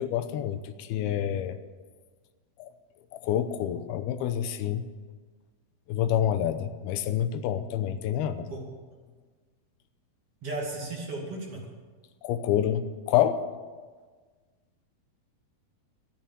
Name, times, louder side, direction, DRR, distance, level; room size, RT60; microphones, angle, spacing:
voice 1, 0.0-1.6 2.6-2.7 3.1-4.8 5.9-8.5 12.2-13.4, left 10 dB, 85° left, 10 dB, 2.8 m, -27 dB
voice 2, 10.4-11.6, right 2 dB, 40° right, -2 dB, 3.1 m, -35 dB
13.0 x 9.0 x 9.2 m, 1.4 s
omnidirectional pair, 4.4 m